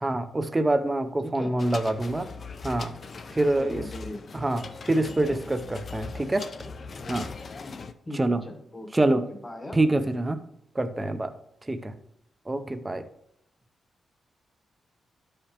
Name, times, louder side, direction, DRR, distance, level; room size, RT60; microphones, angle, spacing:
voice 1, 0.0-2.3 2.6-3.0 3.3-3.9 4.3-6.5 7.1-7.3 8.1-8.4 8.9-9.2 9.7-10.4 10.7-11.3 11.7-12.0 12.5-13.1, right 2 dB, 15° right, 10 dB, 0.5 m, -26 dB
voice 2, 1.2-1.6 3.5-4.2 5.3-5.4 8.1-9.8, left 1 dB, 15° left, 4 dB, 0.9 m, -39 dB
sound 1, 1.6-7.9, left 4 dB, 40° left, 0.4 m, -40 dB
12.5 x 4.9 x 2.9 m, 0.78 s
wide cardioid pair, 150°, 0 cm